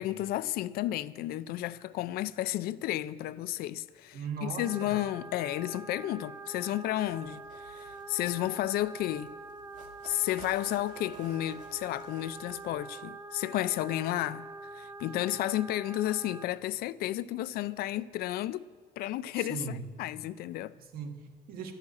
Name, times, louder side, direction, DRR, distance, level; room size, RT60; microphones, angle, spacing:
voice 1, 0.0-9.3 10.0-14.5 14.7-18.6 19.0-20.7, left 14 dB, 80° left, 0.4 m, -32 dB
voice 2, 4.1-5.0 19.3-19.9 20.8-21.7, right 5 dB, 75° right, 1.5 m, -39 dB
sound 1, 4.6-16.5, right 3 dB, 20° right, 0.5 m, -45 dB
sound 2, 6.8-12.9, right 4 dB, 55° right, 1.8 m, -54 dB
12.5 x 6.5 x 9.6 m
cardioid pair, 155°, 16 cm